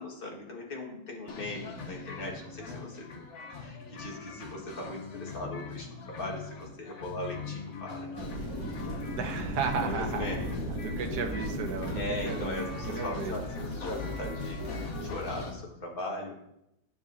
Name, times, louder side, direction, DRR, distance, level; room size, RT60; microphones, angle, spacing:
voice 1, 0.0-3.3 3.6-8.1 9.8-10.5 11.9-16.4, left 1 dB, 35° left, -2 dB, 1.7 m, -39 dB
sound 1, 1.3-15.5, left 4 dB, 50° left, 1.1 m, -42 dB
sound 2, 8.1-15.5, equal, 15° left, 1.8 m, -38 dB
voice 2, 9.1-10.3 10.8-12.6 12.9-13.3, right 6 dB, 75° right, 5 dB, 1.4 m, -34 dB
sound 3, 9.7-15.2, left 1 dB, 80° left, 1.8 m, -39 dB
9.3 x 7.2 x 2.7 m, 0.80 s
omnidirectional pair, 1.8 m